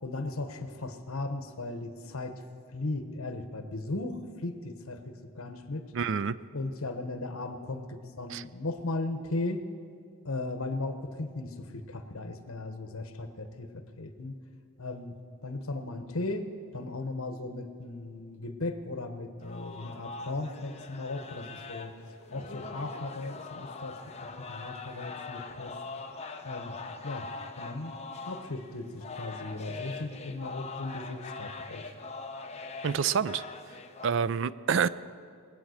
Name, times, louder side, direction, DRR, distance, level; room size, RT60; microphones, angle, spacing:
voice 1, 0.0-2.4 2.7-5.9 6.5-9.6 10.2-14.4 14.8-15.1 15.4-16.5 16.7-25.8 26.4-26.8 27.0-27.3 27.6-31.9, left 2 dB, 85° left, 8 dB, 1.1 m, -37 dB
voice 2, 5.9-6.4 8.3-8.4 32.8-33.4 34.0-34.9, right 6 dB, 60° right, 16 dB, 0.4 m, -27 dB
sound 1, 19.4-34.1, left 3 dB, 30° left, 0.8 m, -42 dB
21.0 x 8.7 x 6.5 m, 2.2 s
head